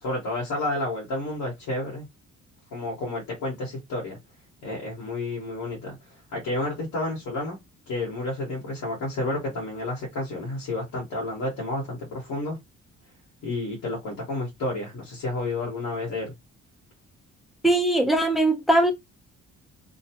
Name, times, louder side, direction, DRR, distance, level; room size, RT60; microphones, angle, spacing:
voice 1, 0.0-2.0 2.7-4.2 4.6-5.9 6.3-7.6 7.9-12.6 13.4-16.3, left 2 dB, 80° left, 1.5 m, -30 dB
voice 2, 17.6-18.9, right 1 dB, ahead, 0.8 m, -20 dB
2.8 x 2.3 x 2.9 m
cardioid pair, 90°, 30 cm